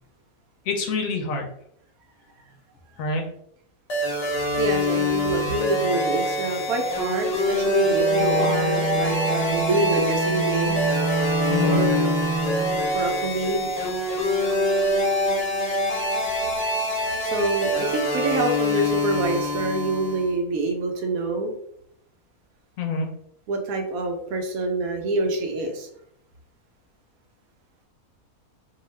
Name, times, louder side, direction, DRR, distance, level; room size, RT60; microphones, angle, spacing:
voice 1, 0.7-1.5 3.0-3.3 11.5-11.8 22.8-23.1, left 3 dB, 70° left, 3 dB, 0.9 m, -26 dB
sound 1, 3.9-20.3, left 1 dB, 55° left, 0.4 m, -25 dB
voice 2, 4.6-10.9 11.6-12.1 12.9-13.7 16.6-16.8 17.2-21.5 23.5-25.9, right 2 dB, 75° right, 3 dB, 1.0 m, -26 dB
Bowed string instrument, 7.8-13.2, right 3 dB, 60° right, 0.7 m, -27 dB
2.7 x 2.3 x 3.1 m, 0.71 s
omnidirectional pair, 1.6 m